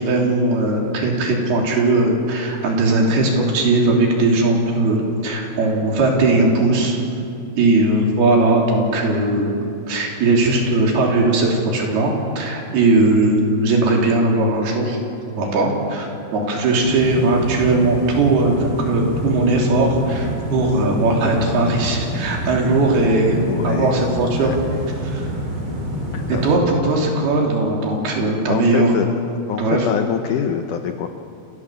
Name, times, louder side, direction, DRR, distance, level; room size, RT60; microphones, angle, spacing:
voice 1, 0.0-7.0 7.6-15.0 15.3-24.5 25.0-25.3 26.3-28.9 29.6-29.9, right 2 dB, 70° right, 0 dB, 5.0 m, -18 dB
sound 1, 16.8-26.6, equal, 30° right, 3.9 m, -27 dB
voice 2, 23.5-24.0 24.3-24.6 26.1-26.4 28.5-29.1 29.5-31.1, left 8 dB, 80° left, 7 dB, 1.8 m, -24 dB
27.5 x 17.0 x 7.5 m, 2.7 s
omnidirectional pair, 4.8 m